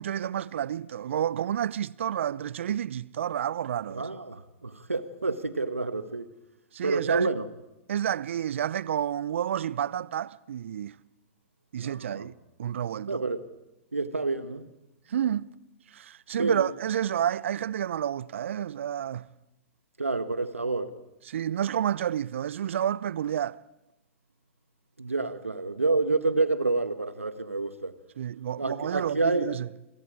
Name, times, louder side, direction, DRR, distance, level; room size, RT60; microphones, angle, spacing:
voice 1, 0.0-4.1 6.7-7.3 7.9-11.0 11.7-12.3 12.6-13.2 15.1-15.5 15.9-19.3 21.3-23.6 28.2-29.7, right 10 dB, 65° right, 0.7 m, -30 dB
voice 2, 3.9-6.3 6.8-7.5 11.8-12.3 13.1-13.5 13.9-14.7 16.4-16.7 20.0-21.0 25.0-27.9 28.6-29.5, right 3 dB, 90° right, 1.3 m, -28 dB
28.5 x 26.5 x 4.9 m
figure-of-eight pair, 105°, 7 cm